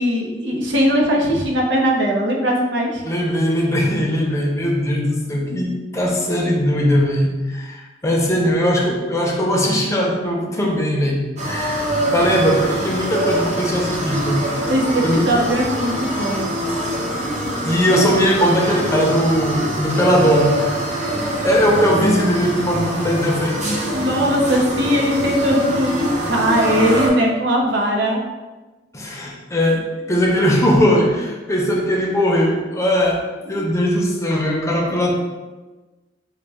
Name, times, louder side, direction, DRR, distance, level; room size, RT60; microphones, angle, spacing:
voice 1, 0.0-3.0 14.7-16.4 23.9-28.2, equal, 90° right, -1 dB, 0.8 m, -19 dB
voice 2, 3.0-14.5 15.0-15.3 17.6-20.8 21.1-23.8 28.9-35.1, equal, 15° left, -2 dB, 0.6 m, -19 dB
sound 1, 11.4-27.1, right 1 dB, 40° right, 0.7 m, -24 dB
4.0 x 2.2 x 3.4 m, 1.2 s
head